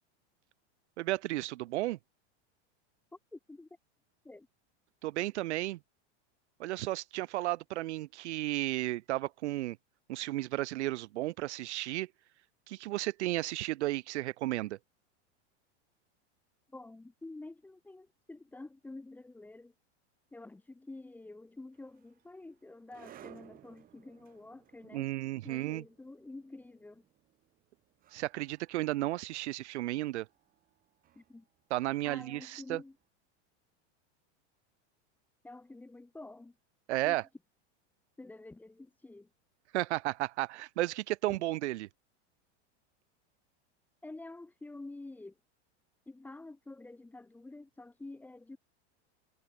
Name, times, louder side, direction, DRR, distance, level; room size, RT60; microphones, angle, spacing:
voice 1, 1.0-2.0 5.0-5.8 6.6-9.8 10.1-12.1 12.7-14.8 24.9-25.8 28.1-30.3 31.7-32.8 36.9-37.2 39.7-41.9, right 17 dB, 75° right, 1.7 m, -33 dB
voice 2, 3.3-3.7 4.2-4.5 16.7-19.7 20.3-25.1 25.4-27.0 31.1-31.5 32.0-33.0 35.4-36.6 37.0-37.2 38.2-39.3 44.0-45.4 46.1-48.6, left 2 dB, 5° left, 1.4 m, -48 dB
sound 1, 21.7-32.9, right 12 dB, 25° right, 3.9 m, -60 dB
supercardioid pair, 165°, 34 cm